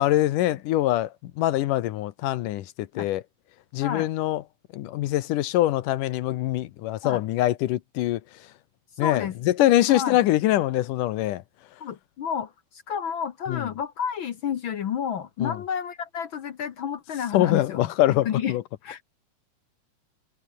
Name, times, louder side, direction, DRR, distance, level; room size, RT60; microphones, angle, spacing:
voice 1, 0.0-3.2 3.7-4.4 4.7-8.5 9.0-11.4 13.5-13.7 15.4-15.6 17.3-18.6, left 14 dB, 80° left, 2.5 m, -24 dB
voice 2, 9.0-9.4 9.9-10.2 11.8-17.8 18.2-18.6 18.8-19.0, left 8 dB, 65° left, 1.2 m, -30 dB
omnidirectional pair, 3.7 m